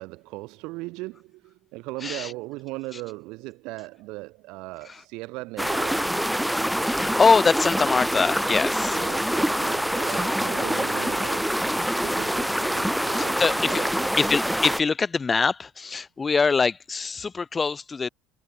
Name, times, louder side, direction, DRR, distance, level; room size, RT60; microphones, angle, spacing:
voice 1, 0.0-6.2 8.9-14.1, right 23 dB, 75° right, 3.7 m, -38 dB
voice 2, 2.0-2.3 6.8-9.2 10.1-10.2 13.1-13.8 14.2-18.1, left 4 dB, 25° left, 0.8 m, -23 dB
sound 1, 5.6-14.8, equal, ahead, 1.6 m, -25 dB
supercardioid pair, 105°, 0 cm